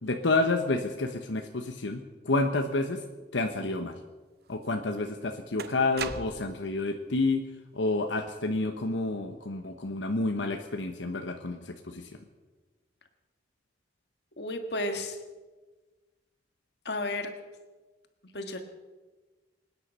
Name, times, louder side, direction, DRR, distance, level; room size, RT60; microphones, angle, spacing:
voice 1, 0.0-3.0 3.3-4.0 4.5-7.4 7.7-12.2, left 2 dB, 90° left, 5 dB, 1.1 m, -29 dB
sound 1, 4.6-4.7 5.6-6.7, right 6 dB, 55° right, 0.7 m, -38 dB
voice 2, 14.4-15.2 16.8-17.3 18.3-18.6, left 1 dB, 65° left, 6 dB, 1.7 m, -32 dB
25.5 x 9.9 x 5.5 m, 1.3 s
head